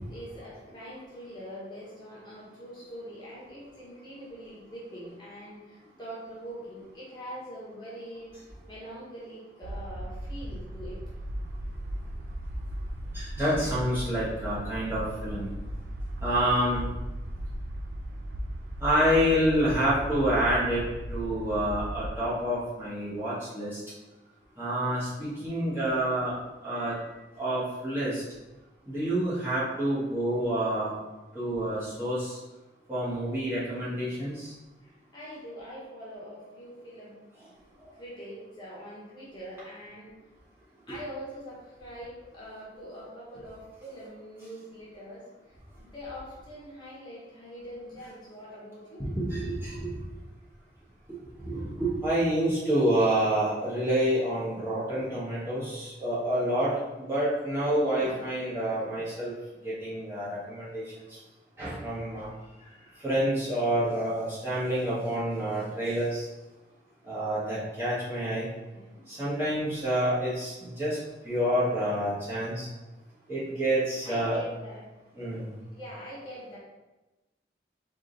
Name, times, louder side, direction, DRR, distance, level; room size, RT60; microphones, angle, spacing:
voice 1, 0.1-8.3 8.7-11.0 29.2-29.3 34.8-37.2 37.9-40.1 40.9-49.0 62.3-63.1 68.7-69.0 74.0-74.8 75.3-75.4 75.8-76.6, equal, 25° left, -7 dB, 1.2 m, -43 dB
sound 1, 9.6-22.2, equal, 90° right, 0.4 m, -37 dB
voice 2, 13.1-15.5 16.2-16.9 18.8-20.8 21.1-23.8 24.6-26.3 26.6-27.0 27.4-28.2 28.9-31.0 31.3-32.4 32.9-34.5 49.0-50.0 51.4-59.3 59.6-60.8 61.6-62.3 63.0-66.3 67.0-68.5 69.1-71.0 71.2-72.7 73.3-74.4 75.1-75.5, right 1 dB, 15° right, -10 dB, 1.5 m, -28 dB
3.7 x 3.6 x 3.9 m, 1.1 s
head